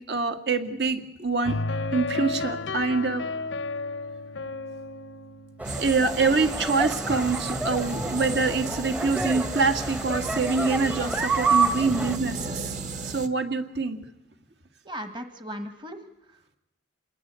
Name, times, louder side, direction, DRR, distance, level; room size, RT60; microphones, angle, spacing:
voice 1, 0.0-1.6 1.9-3.2 5.7-14.0, right 4 dB, 65° right, 7 dB, 2.1 m, -25 dB
sound 1, 1.4-6.4, left 3 dB, 90° left, 0.9 m, -33 dB
sound 2, 5.6-12.2, right 3 dB, 10° right, 0.9 m, -29 dB
sound 3, 5.6-13.3, right 3 dB, 40° right, 1.4 m, -36 dB
voice 2, 14.8-16.6, equal, 25° right, 8 dB, 1.4 m, -38 dB
27.0 x 20.5 x 8.4 m, 0.82 s
head